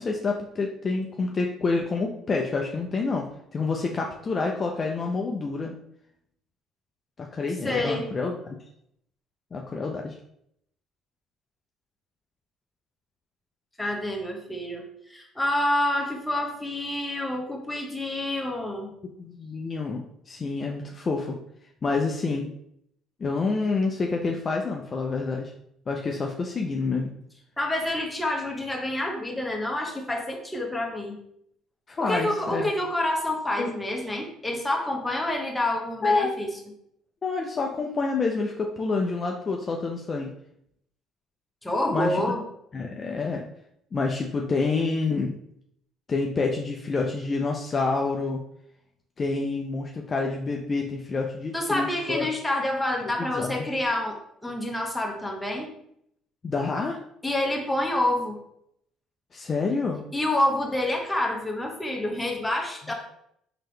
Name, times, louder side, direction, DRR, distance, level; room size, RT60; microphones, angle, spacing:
voice 1, 0.0-5.7 7.2-8.6 9.5-10.2 19.2-21.4 21.8-22.5 23.2-25.5 25.9-27.1 31.9-32.7 33.6-33.7 36.0-36.4 37.2-40.3 41.9-42.2 42.7-43.5 43.9-45.4 46.1-48.4 49.2-52.3 53.2-53.6 56.4-57.0 59.3-60.0, left 3 dB, 35° left, 1 dB, 0.4 m, -28 dB
voice 2, 7.6-8.1 13.8-18.9 27.6-31.2 32.0-36.5 41.6-42.4 51.5-54.2 54.4-55.7 57.2-58.4 60.1-62.9, left 1 dB, 10° left, 1 dB, 0.9 m, -28 dB
3.6 x 2.8 x 3.2 m, 0.73 s
cardioid pair, 95°, 0 cm